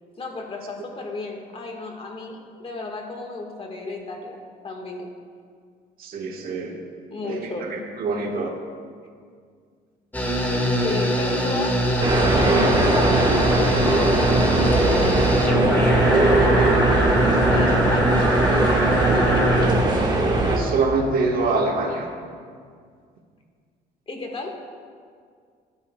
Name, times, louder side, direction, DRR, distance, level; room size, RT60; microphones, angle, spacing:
voice 1, 0.2-5.1 7.1-7.8 10.8-15.7 16.1-19.5 24.1-24.6, left 2 dB, 35° left, 2 dB, 1.7 m, -34 dB
voice 2, 6.0-6.8 7.2-8.5 20.6-22.1, right 3 dB, 60° right, 1 dB, 1.5 m, -25 dB
sound 1, 10.1-19.7, equal, 10° left, 1.9 m, -22 dB
sound 2, 12.0-20.6, right 2 dB, 25° right, 1.7 m, -20 dB
15.0 x 11.5 x 2.4 m, 2.1 s
cardioid pair, 110°, 17 cm